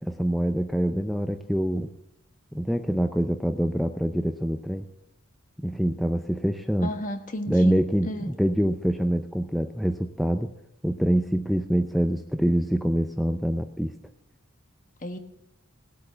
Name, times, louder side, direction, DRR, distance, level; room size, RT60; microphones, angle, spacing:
voice 1, 0.0-1.9 2.5-4.8 5.6-6.9 7.5-10.5 10.8-13.9, equal, ahead, 7 dB, 0.5 m, -25 dB
voice 2, 6.8-7.7 8.0-8.3 15.0-15.2, left 1 dB, 40° left, 7 dB, 1.3 m, -32 dB
17.5 x 8.3 x 6.7 m, 0.80 s
head